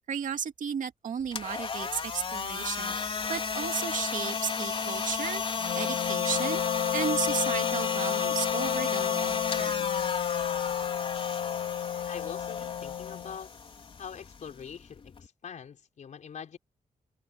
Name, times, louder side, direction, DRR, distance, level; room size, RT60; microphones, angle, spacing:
voice 1, 0.1-3.0 3.3-5.4 5.7-6.6 6.9-9.8, right 7 dB, 60° right, 2.3 m, -34 dB
sound 1, 1.2-15.3, left 5 dB, 40° left, 4.7 m, -33 dB
Wind instrument woodwind instrument, 5.6-13.4, left 9 dB, 85° left, 2.8 m, -32 dB
voice 2, 12.1-13.6 14.0-16.6, left 7 dB, 55° left, 4.7 m, -43 dB
wide cardioid pair, 180°, 15 cm